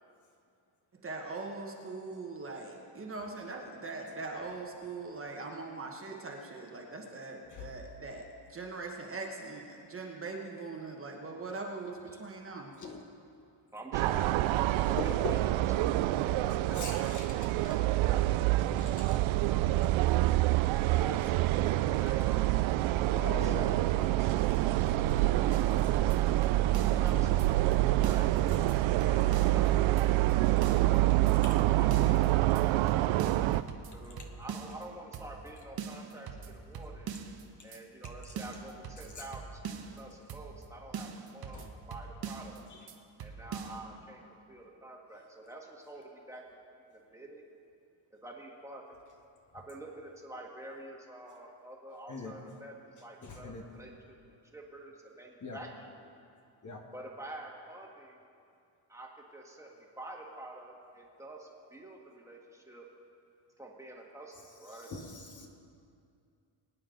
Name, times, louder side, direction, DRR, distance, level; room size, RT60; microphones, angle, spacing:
voice 1, 1.0-12.7, right 3 dB, 25° right, 0 dB, 1.3 m, -41 dB
voice 2, 13.7-15.5 15.7-18.7 19.3-20.0 20.6-22.5 23.1-28.3 29.0-33.3 33.9-37.1 37.6-41.6 41.9-42.6 43.2-44.2 44.5-47.4 48.2-49.0 49.5-52.7 53.0-54.2 54.5-56.1 56.9-58.2 58.9-62.9 63.6-64.9, right 1 dB, 5° right, -1 dB, 1.6 m, -48 dB
sound 1, 13.9-33.6, right 16 dB, 70° right, 0.5 m, -27 dB
voice 3, 15.0-15.4 16.8-17.3 18.8-19.2 23.1-23.7 41.5-41.7 52.1-52.3 53.2-53.6 55.4-55.6 56.6-56.8 64.9-65.5, left 2 dB, 35° left, 1 dB, 1.4 m, -40 dB
sound 2, 25.5-27.1 27.4-27.5 27.7-29.7 30.0-30.3 30.6-32.3 32.6-32.7 32.9-34.8 35.1-35.5 35.8-37.4 37.7-37.8 38.0-40.0 40.3-40.7 40.9-42.6 42.9-43.0 43.2-43.8, right 6 dB, 50° right, 1.1 m, -42 dB
23.0 x 9.5 x 3.9 m, 2.4 s
cardioid pair, 145°, 49 cm